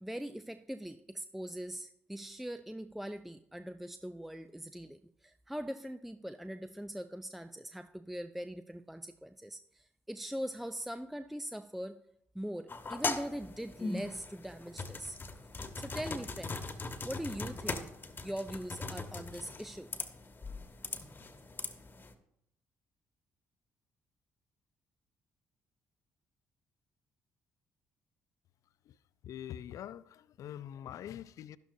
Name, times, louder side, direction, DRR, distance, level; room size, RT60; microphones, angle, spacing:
voice 1, 0.0-12.0 12.3-15.2 15.8-16.6 17.0-17.9 18.2-19.9, equal, 5° right, 0.5 m, -41 dB
sound 1, 12.7-22.1, left 3 dB, 35° left, 1.3 m, -40 dB
voice 2, 29.2-31.6, left 10 dB, 65° left, 0.4 m, -44 dB
12.0 x 11.0 x 2.7 m
hypercardioid pair, 50°, 6 cm